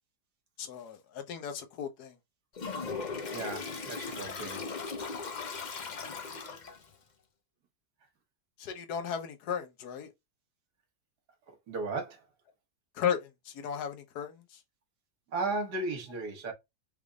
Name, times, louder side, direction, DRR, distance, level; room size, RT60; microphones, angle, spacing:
voice 1, 0.6-2.2 5.7-5.9 8.6-10.1 12.9-14.6, left 8 dB, 70° left, 1.4 m, -35 dB
Toilet flush, 2.5-6.9, left 4 dB, 50° left, 0.5 m, -38 dB
voice 2, 3.3-4.6 11.7-12.3 15.3-16.5, right 3 dB, 70° right, 1.9 m, -35 dB
5.2 x 3.3 x 2.3 m
omnidirectional pair, 1.8 m